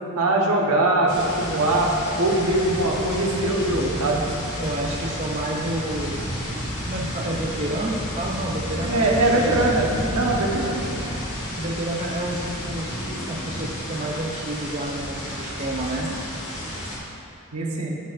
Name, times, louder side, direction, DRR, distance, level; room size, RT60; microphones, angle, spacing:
voice 1, 0.2-1.9 2.2-4.3 8.8-11.0 17.5-17.9, right 2 dB, 85° right, -2 dB, 1.1 m, -22 dB
sound 1, 1.1-17.0, equal, 75° left, 1.6 m, -31 dB
voice 2, 4.6-6.4 6.9-9.8 11.5-12.9 13.3-16.1, right 1 dB, 30° right, -1 dB, 0.5 m, -29 dB
12.5 x 4.4 x 2.5 m, 2.6 s
head